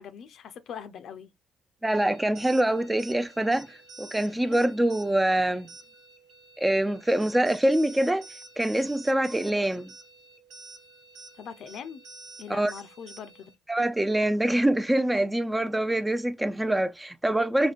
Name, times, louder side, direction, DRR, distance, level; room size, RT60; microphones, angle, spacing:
voice 1, 0.0-1.3 11.4-12.0 12.4-13.5, left 7 dB, 70° left, 0.6 m, -41 dB
voice 2, 1.8-5.7 6.6-8.3 8.6-9.9 12.5-12.7 13.7-17.7, right 1 dB, 10° right, 0.4 m, -25 dB
sound 1, 1.9-13.5, right 3 dB, 80° right, 0.9 m, -49 dB
5.1 x 2.2 x 2.4 m
cardioid pair, 90°, 0 cm